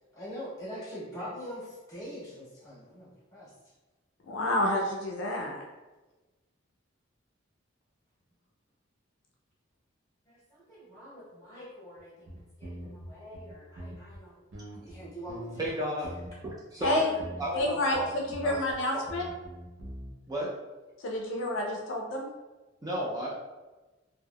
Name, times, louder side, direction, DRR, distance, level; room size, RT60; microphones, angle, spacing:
voice 1, 0.1-3.7 10.3-15.9 16.9-17.4 17.9-18.2, equal, 15° left, -9 dB, 1.4 m, -44 dB
voice 2, 4.3-5.7 16.8-17.1 17.5-19.3 21.0-22.2, left 1 dB, 70° left, 0 dB, 0.4 m, -29 dB
sound 1, 12.0-12.1 12.3-14.2 14.5-15.7 16.0-16.5 16.8-17.7 17.9-18.8 19.1-20.1, equal, 75° right, 0.5 m, -43 dB
voice 3, 15.6-16.1 16.4-17.1 17.4-18.1 18.4-18.6 18.9-19.0 20.3-20.6 22.8-23.3, right 1 dB, 20° right, -5 dB, 0.4 m, -33 dB
3.3 x 2.1 x 2.2 m, 1.2 s
head